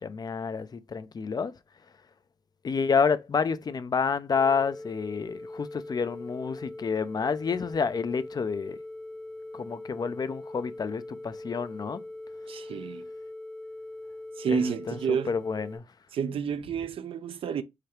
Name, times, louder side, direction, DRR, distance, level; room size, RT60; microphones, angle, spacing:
voice 1, 0.0-1.5 2.6-8.8 9.5-12.0 14.5-15.8, left 5 dB, 40° left, 0.4 m, -29 dB
sound 1, 4.4-15.8, left 2 dB, 10° left, 0.7 m, -42 dB
voice 2, 12.5-13.1 14.4-15.3 16.1-17.6, right 6 dB, 70° right, 0.4 m, -30 dB
4.9 x 2.3 x 2.9 m
supercardioid pair, 55°, 10 cm